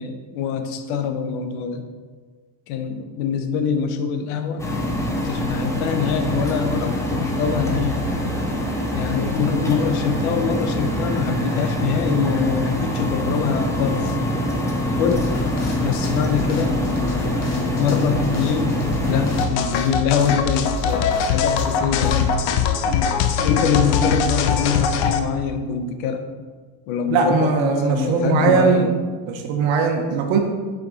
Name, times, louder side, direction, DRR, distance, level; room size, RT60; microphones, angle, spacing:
voice 1, 0.0-1.8 2.7-4.7 5.0-8.0 8.9-14.2 15.0-15.4 15.8-16.7 17.8-22.3 23.4-26.2 26.9-28.9, left 6 dB, 90° left, 7 dB, 0.9 m, -24 dB
sound 1, 4.6-19.5, equal, 5° left, 0.4 m, -24 dB
sound 2, 15.1-22.4, left 2 dB, 35° left, 0.8 m, -32 dB
sound 3, 19.4-25.2, left 7 dB, 65° left, 0.7 m, -21 dB
voice 2, 27.1-28.9 29.3-30.4, right 5 dB, 65° right, 3 dB, 1.1 m, -19 dB
5.9 x 5.1 x 3.9 m, 1.5 s
cardioid pair, 155°, 49 cm